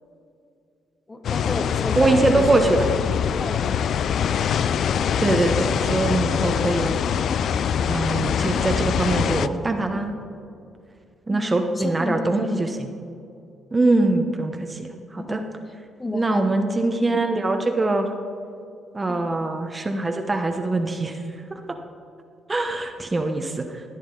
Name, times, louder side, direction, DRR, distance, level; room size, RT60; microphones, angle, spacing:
voice 1, 1.1-3.8 4.1-4.2 11.3-12.6 15.2-15.5 16.0-16.5 19.1-19.2, left 2 dB, 25° left, 6 dB, 1.1 m, -32 dB
sound 1, 1.2-9.5, left 8 dB, 65° left, 0.4 m, -23 dB
voice 2, 2.0-2.9 5.2-6.9 7.9-10.1 11.3-12.7 13.7-15.4 16.1-18.1 18.9-21.2 21.5-21.6 22.5-23.8, right 2 dB, 20° right, 5 dB, 0.9 m, -23 dB
16.5 x 9.4 x 3.9 m, 2.5 s
cardioid pair, 90°, 0 cm